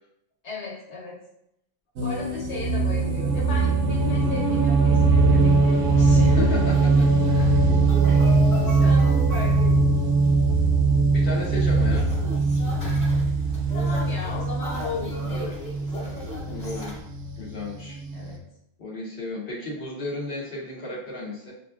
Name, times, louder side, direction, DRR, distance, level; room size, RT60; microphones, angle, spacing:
voice 1, 0.4-1.2 2.0-6.6 8.0-10.0 13.7-16.4 18.1-18.4, left 3 dB, 85° left, -5 dB, 1.6 m, -36 dB
sound 1, 2.0-18.4, right 3 dB, 90° right, 0.9 m, -21 dB
sound 2, 5.7-17.0, equal, 40° left, 1.4 m, -38 dB
voice 2, 6.4-7.7 11.1-12.1 16.5-16.9 17.4-18.0 18.8-21.5, left 2 dB, 60° left, -6 dB, 1.1 m, -34 dB
6.6 x 2.5 x 2.4 m, 0.80 s
omnidirectional pair, 1.1 m